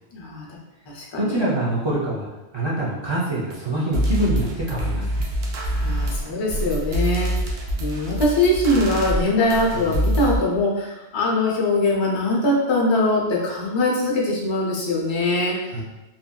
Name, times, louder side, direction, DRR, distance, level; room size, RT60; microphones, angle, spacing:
voice 1, 0.1-0.5 0.9-1.4 5.8-7.4 7.8-15.6, left 1 dB, 40° left, -2 dB, 0.4 m, -22 dB
voice 2, 1.2-2.3 2.5-5.1 9.7-9.9 15.7-15.8, right 1 dB, 40° right, -7 dB, 0.4 m, -25 dB
sound 1, 3.5-3.6 3.9-10.4, equal, 85° right, 0.9 m, -25 dB
2.7 x 2.5 x 2.2 m, 1.1 s
omnidirectional pair, 1.1 m